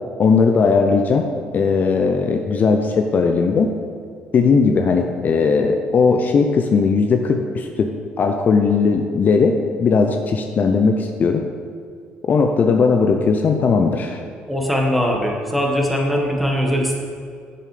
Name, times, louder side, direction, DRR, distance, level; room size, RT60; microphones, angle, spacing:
voice 1, 0.2-3.7 4.3-7.9 8.2-11.5 12.3-14.2, left 4 dB, 45° left, 5 dB, 0.6 m, -18 dB
voice 2, 14.5-17.0, equal, ahead, 0 dB, 1.6 m, -20 dB
7.4 x 6.9 x 5.0 m, 2.3 s
supercardioid pair, 85°, 4 cm